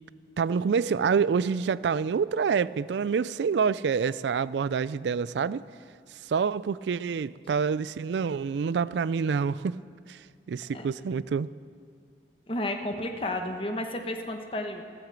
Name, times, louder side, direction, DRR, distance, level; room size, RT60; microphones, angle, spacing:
voice 1, 0.4-5.6 6.3-9.8 10.1-10.2 10.5-11.5, right 6 dB, 85° right, 0.4 m, -27 dB
voice 2, 12.5-14.8, left 1 dB, 30° left, 1.2 m, -32 dB
13.5 x 13.5 x 7.6 m
head